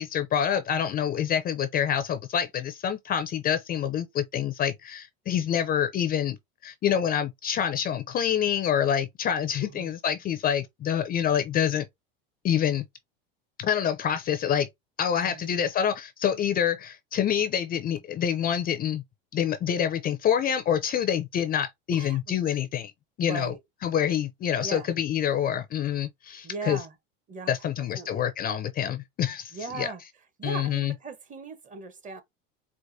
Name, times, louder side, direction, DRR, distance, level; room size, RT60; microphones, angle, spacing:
voice 1, 0.0-6.4 6.6-11.9 12.4-12.8 13.6-14.7 15.0-19.0 19.3-22.9 23.2-23.5 23.8-26.8 27.5-29.9 30.4-30.9, left 9 dB, 30° left, 0.5 m, -27 dB
voice 2, 9.6-9.9 15.2-15.6 21.9-22.2 23.2-23.6 24.6-24.9 26.4-26.9 27.3-28.3 29.5-30.0 30.4-32.2, right 4 dB, 25° right, 0.9 m, -39 dB
4.7 x 2.1 x 2.6 m
supercardioid pair, 110°, 30 cm